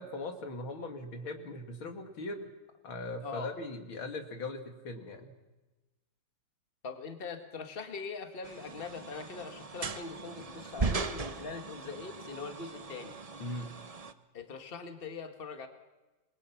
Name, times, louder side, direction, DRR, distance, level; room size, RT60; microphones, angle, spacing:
voice 1, 0.0-2.5 2.8-5.3 13.4-13.7, left 2 dB, 85° left, 5 dB, 3.0 m, -40 dB
voice 2, 3.2-3.5 6.8-13.2 14.3-15.7, left 4 dB, 30° left, 6 dB, 1.7 m, -42 dB
sound 1, 8.4-14.1, right 4 dB, 60° right, 0.3 m, -38 dB
27.5 x 22.0 x 5.9 m, 1.1 s
omnidirectional pair, 2.2 m